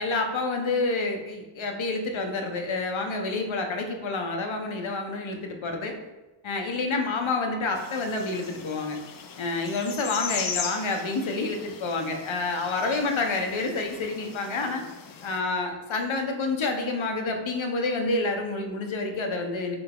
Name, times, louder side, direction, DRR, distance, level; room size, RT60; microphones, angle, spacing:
voice 1, 0.0-6.0 6.4-9.0 9.4-14.8 15.2-19.8, left 3 dB, 70° left, 4 dB, 0.8 m, -28 dB
sound 1, 7.7-15.4, left 6 dB, 45° left, 0.4 m, -38 dB
3.8 x 3.3 x 3.7 m, 1.1 s
wide cardioid pair, 105°, 49 cm